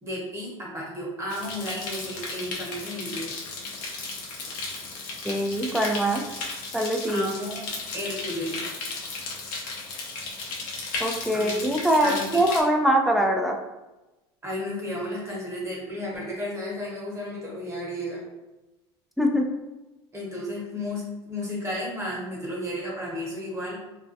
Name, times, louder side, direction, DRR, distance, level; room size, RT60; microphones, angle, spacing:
voice 1, 0.0-3.3 7.1-7.7 7.9-8.6 11.3-11.6 12.0-12.4 14.4-18.2 20.1-23.8, left 1 dB, 20° right, -4 dB, 1.0 m, -33 dB
sound 1, 1.3-12.6, left 3 dB, 65° left, 0.6 m, -35 dB
voice 2, 5.2-6.3 6.7-7.3 11.0-13.6 19.2-19.5, right 1 dB, ahead, 2 dB, 0.4 m, -23 dB
2.4 x 2.2 x 2.5 m, 1.0 s
supercardioid pair, 95°, 14 cm